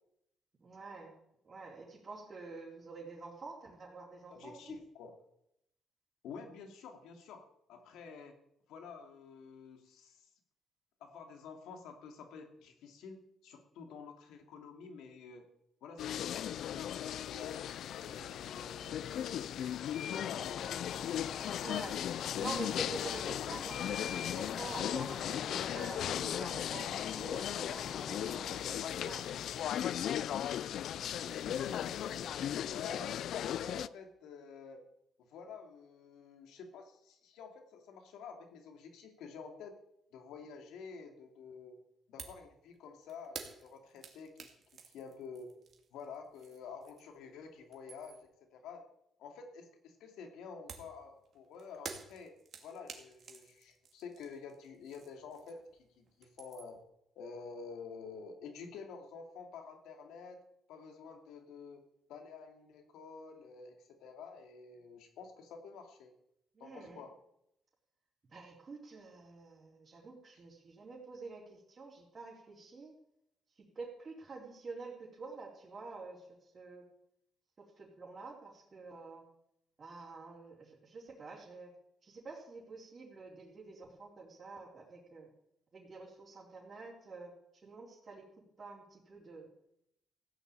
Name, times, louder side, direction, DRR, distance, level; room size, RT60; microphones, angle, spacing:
voice 1, 0.6-1.2 1.4-4.8 21.6-22.1 22.4-29.3 66.5-67.0 68.3-72.9 73.7-76.9 77.6-79.3 79.8-81.7 82.0-85.3 85.7-88.2 88.6-89.5, right 3 dB, 40° right, -5 dB, 4.1 m, -48 dB
voice 2, 4.3-5.2 6.2-7.4 7.7-8.4 8.7-10.3 11.0-15.5 15.8-19.7 20.0-21.0 31.2-32.3 32.7-33.2 33.5-34.9 35.2-39.7 40.1-41.8 42.1-44.5 44.7-45.5 45.9-48.8 49.2-56.8 57.2-60.4 60.7-61.8 62.1-66.1 66.6-67.1, left 5 dB, 90° left, 4 dB, 2.6 m, -49 dB
sound 1, 16.0-33.9, left 10 dB, 70° left, 0.4 m, -37 dB
sound 2, 20.0-28.8, left 6 dB, 50° left, 0.9 m, -46 dB
sound 3, 42.2-42.5 42.8-47.2 47.6-48.3 50.7-55.8 56.1-56.8, right 5 dB, 55° right, 2.4 m, -51 dB
15.5 x 6.9 x 8.9 m, 0.79 s
cardioid pair, 90°, 0 cm